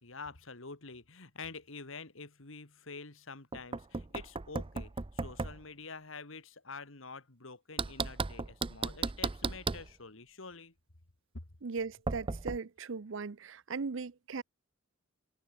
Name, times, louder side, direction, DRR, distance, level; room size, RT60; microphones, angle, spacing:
voice 1, 0.0-10.7, left 4 dB, 70° left, 2.4 m, -47 dB
Knock, 3.5-5.6 7.8-9.9 12.1-12.6, right 4 dB, 25° right, 0.6 m, -35 dB
voice 2, 11.6-14.4, right 4 dB, 65° right, 0.6 m, -38 dB
head